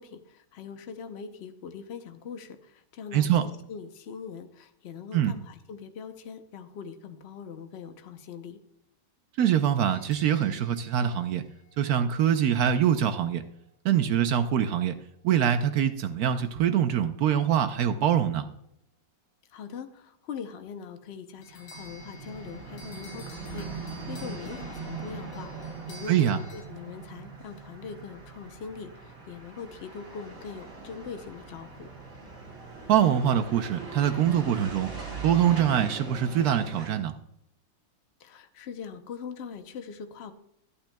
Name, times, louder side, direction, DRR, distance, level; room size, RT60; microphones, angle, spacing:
voice 1, 0.0-8.6 19.5-31.9 38.2-40.3, left 6 dB, 65° left, 8 dB, 0.6 m, -42 dB
voice 2, 3.1-3.4 5.1-5.3 9.4-11.4 11.8-13.4 13.8-15.0 15.2-18.5 26.1-26.4 32.9-34.9 35.2-37.1, right 9 dB, 70° right, 9 dB, 0.9 m, -24 dB
sound 1, 9.9-12.2 21.4-26.6, left 1 dB, 85° left, 2.0 m, -51 dB
sound 2, 21.4-37.0, right 3 dB, 45° right, 2.9 m, -41 dB
14.0 x 8.8 x 2.2 m, 0.75 s
omnidirectional pair, 2.0 m